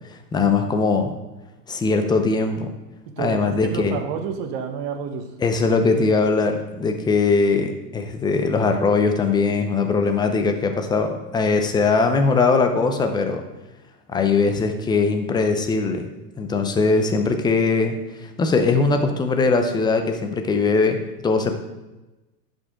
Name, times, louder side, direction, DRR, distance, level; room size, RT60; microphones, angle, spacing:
voice 1, 0.3-1.1 1.7-2.7 3.2-4.0 5.4-13.4 14.1-16.1 16.4-18.0 18.2-21.0 21.2-21.5, left 4 dB, 10° left, 6 dB, 0.5 m, -20 dB
voice 2, 3.1-5.3, right 6 dB, 45° right, 5 dB, 1.3 m, -29 dB
11.0 x 5.3 x 3.6 m, 1.1 s
hypercardioid pair, 120°, 50 cm